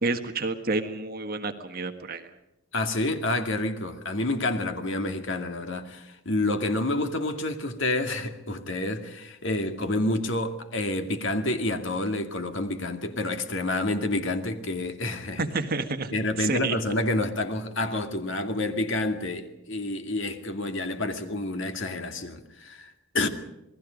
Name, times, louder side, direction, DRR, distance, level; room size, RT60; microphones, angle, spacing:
voice 1, 0.0-2.3 15.4-16.8, right 3 dB, 40° right, 1.6 m, -29 dB
voice 2, 2.7-15.5 16.1-23.3, left 2 dB, 55° left, 2.2 m, -29 dB
28.0 x 20.0 x 5.2 m
head